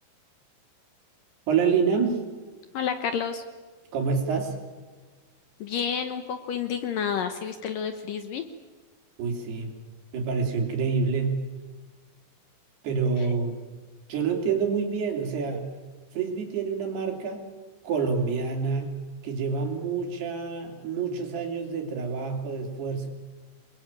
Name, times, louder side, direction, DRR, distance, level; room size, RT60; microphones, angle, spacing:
voice 1, 1.5-2.2 3.9-4.6 9.2-9.7 10.1-11.4 12.8-13.6 14.1-15.7 16.1-17.5 17.8-23.1, right 5 dB, 70° right, 3 dB, 5.1 m, -27 dB
voice 2, 2.7-3.4 5.6-8.4, left 7 dB, 70° left, 8 dB, 2.3 m, -30 dB
27.5 x 21.0 x 8.8 m, 1.4 s
omnidirectional pair, 4.9 m